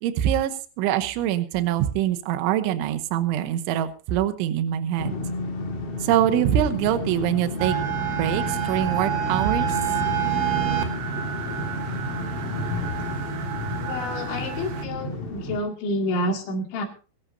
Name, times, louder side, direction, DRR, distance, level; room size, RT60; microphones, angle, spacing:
voice 1, 0.0-5.2 6.0-7.8 8.2-9.8, right 11 dB, 80° right, 10 dB, 3.4 m, -24 dB
sound 1, 5.0-15.6, left 2 dB, 45° left, 2.1 m, -31 dB
sound 2, 7.6-14.8, right 9 dB, 65° right, 2.2 m, -28 dB
voice 2, 13.8-16.9, left 1 dB, 75° left, 1 dB, 4.8 m, -28 dB
22.5 x 12.0 x 2.7 m, 0.36 s
omnidirectional pair, 5.5 m